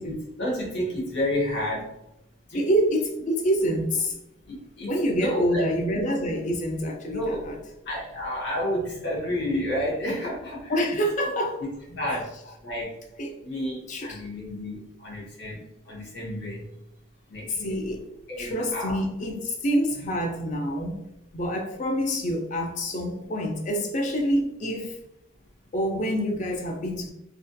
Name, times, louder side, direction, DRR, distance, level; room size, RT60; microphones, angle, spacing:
voice 1, 0.0-1.9 2.5-2.6 4.4-4.9 5.2-5.6 7.1-7.4 7.8-10.7 11.6-12.4 12.6-13.0 13.4-16.7 17.3-19.0, left 1 dB, 55° left, -4 dB, 0.8 m, -31 dB
voice 2, 2.5-4.2 4.9-7.6 10.7-11.6 13.2-14.2 17.5-18.0 18.4-21.0 21.3-25.0 25.7-27.1, equal, 35° left, 3 dB, 0.4 m, -27 dB
2.4 x 2.2 x 2.5 m, 0.85 s
head